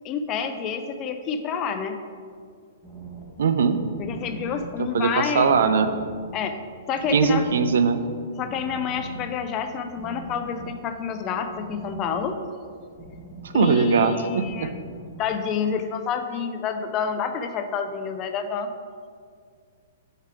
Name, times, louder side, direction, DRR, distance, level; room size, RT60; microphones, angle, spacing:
voice 1, 0.0-2.0 4.0-5.6 6.3-6.6 6.9-7.4 8.4-12.4 13.5-14.8 15.2-18.7, left 6 dB, 30° left, 7 dB, 0.4 m, -28 dB
sound 1, 2.8-15.6, right 3 dB, ahead, 1.2 m, -42 dB
voice 2, 3.4-3.8 4.8-5.9 7.1-8.0 13.4-14.7, right 5 dB, 70° right, 10 dB, 0.4 m, -21 dB
4.6 x 4.5 x 4.8 m, 2.1 s
hypercardioid pair, 135°, 0 cm